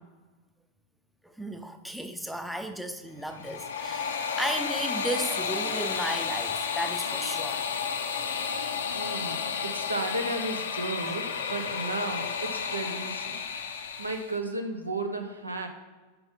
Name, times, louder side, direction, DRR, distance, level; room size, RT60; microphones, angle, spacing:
voice 1, 1.2-7.6 11.1-11.2 11.6-11.7, right 1 dB, ahead, 7 dB, 0.6 m, -34 dB
sound 1, 3.2-14.4, left 6 dB, 65° left, 0.6 m, -32 dB
voice 2, 8.9-13.4 14.0-15.7, right 2 dB, 80° right, 4 dB, 0.8 m, -34 dB
5.8 x 5.4 x 5.4 m, 1.3 s
figure-of-eight pair, 90°, 0 cm